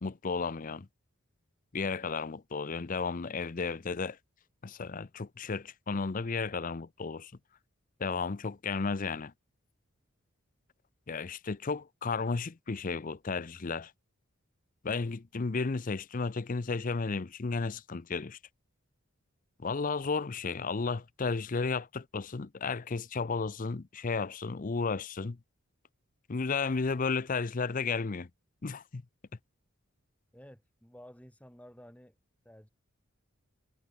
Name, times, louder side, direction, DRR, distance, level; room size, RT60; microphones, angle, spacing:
voice 1, 0.0-0.9 1.7-4.2 4.6-7.3 8.0-9.3 11.1-13.9 14.8-18.4 19.6-25.4 26.3-28.3 28.6-29.0, left 4 dB, 40° left, 0.6 m, -33 dB
voice 2, 30.3-32.1 32.4-32.7, equal, 5° left, 5.5 m, -53 dB
head